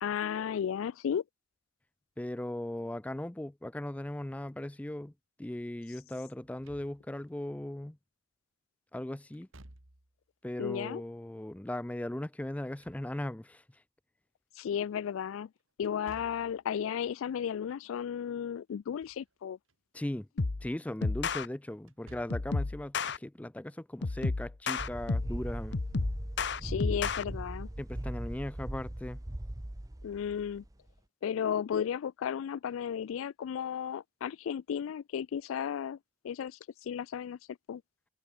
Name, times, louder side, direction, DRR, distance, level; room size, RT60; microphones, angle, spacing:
voice 1, 0.0-1.2 10.6-11.0 14.6-15.5 15.8-19.6 26.6-27.7 30.0-30.6 31.2-36.0 36.2-37.4 37.7-37.8, left 8 dB, 85° left, 0.3 m, -34 dB
voice 2, 2.2-5.1 5.4-8.0 8.9-9.5 10.4-13.6 19.9-20.3 20.6-25.8 27.8-29.2, left 1 dB, 5° left, 0.3 m, -38 dB
Slam / Thump thud, 6.4-7.3 9.3-10.2 12.5-13.5 15.8-16.6 18.7-19.3 19.7-19.8 21.8-22.6, right 1 dB, 80° right, 2.8 m, -56 dB
sound 1, 20.4-20.7 21.0-21.5 22.3-23.2 24.0-25.4 25.7-27.2, left 3 dB, 60° left, 0.8 m, -31 dB
sound 2, 24.8-30.9, right 1 dB, 15° right, 0.8 m, -39 dB
head